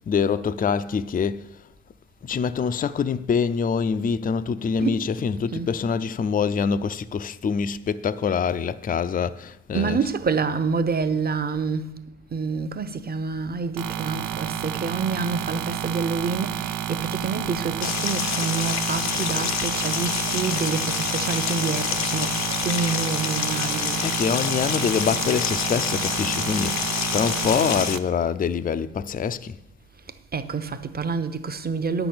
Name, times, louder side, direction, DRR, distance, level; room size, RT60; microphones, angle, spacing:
voice 1, 0.0-1.4 2.2-10.0 24.0-26.8 27.1-29.6, left 6 dB, 30° left, 0.5 m, -25 dB
voice 2, 9.7-12.0 12.3-24.0 30.3-32.1, right 5 dB, 30° right, 0.9 m, -27 dB
sound 1, 13.8-28.0, right 10 dB, 90° right, 0.8 m, -30 dB
sound 2, 17.8-28.0, left 9 dB, 65° left, 0.7 m, -28 dB
9.6 x 6.0 x 8.6 m
cardioid pair, 90°, 30 cm